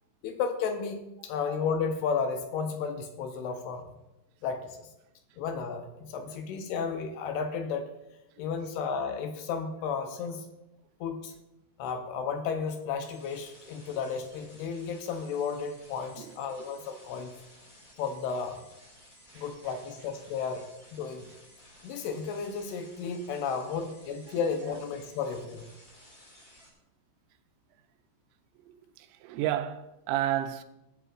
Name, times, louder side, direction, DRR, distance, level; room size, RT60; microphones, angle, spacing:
voice 1, 0.2-3.8 4.4-4.9 5.4-7.9 8.4-10.5 11.0-11.3 11.8-17.3 18.0-18.6 19.4-20.6 20.9-21.3 21.8-25.7, left 5 dB, 75° left, 2.6 m, -33 dB
sound 1, 13.0-26.7, left 1 dB, 30° left, 1.6 m, -56 dB
voice 2, 29.0-30.6, right 12 dB, 85° right, 3.0 m, -31 dB
19.0 x 8.1 x 2.5 m
omnidirectional pair, 5.2 m